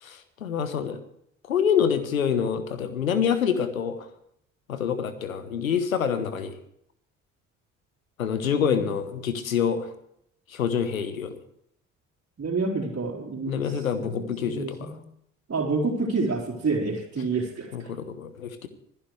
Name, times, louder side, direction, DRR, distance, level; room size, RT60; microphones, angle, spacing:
voice 1, 0.0-1.0 1.5-4.1 4.7-6.5 8.2-9.9 10.5-11.3 13.5-14.9 17.7-18.7, left 7 dB, 85° left, 12 dB, 1.2 m, -26 dB
voice 2, 12.4-13.6 14.0-15.0 15.5-17.9, right 3 dB, 35° right, -4 dB, 3.9 m, -28 dB
25.5 x 10.5 x 3.2 m, 0.72 s
figure-of-eight pair, 45°, 40 cm